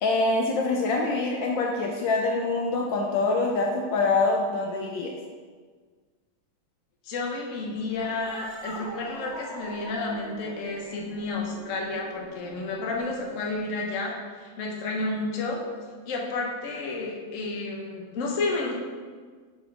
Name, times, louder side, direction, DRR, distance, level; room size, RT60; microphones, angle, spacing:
voice 1, 0.0-5.1, left 3 dB, 70° left, 0 dB, 1.3 m, -25 dB
voice 2, 7.0-15.6 16.1-18.7, left 3 dB, 45° left, -1 dB, 1.2 m, -31 dB
Cat, 7.9-13.6, right 2 dB, 50° right, 0.8 m, -42 dB
6.0 x 5.2 x 4.7 m, 1.5 s
omnidirectional pair, 2.3 m